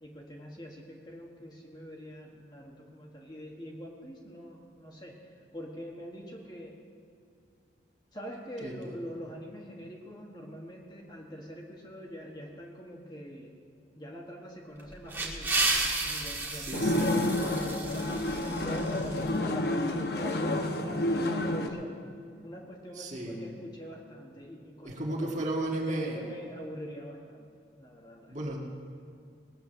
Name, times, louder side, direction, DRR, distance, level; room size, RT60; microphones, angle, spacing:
voice 1, 0.0-5.2 5.5-6.8 8.1-13.6 13.9-17.1 17.5-22.0 22.4-25.3 25.9-27.5 27.8-28.4, equal, 25° left, -1 dB, 1.4 m, -43 dB
voice 2, 8.6-9.0 16.5-17.2 23.0-23.4 24.8-26.2 28.3-28.6, right 1 dB, 40° right, -1 dB, 1.8 m, -34 dB
sound 1, 14.8-19.3, right 3 dB, 10° right, 1.6 m, -33 dB
sound 2, 16.7-21.7, left 1 dB, 60° left, 1.0 m, -29 dB
19.0 x 8.1 x 6.6 m, 2.4 s
head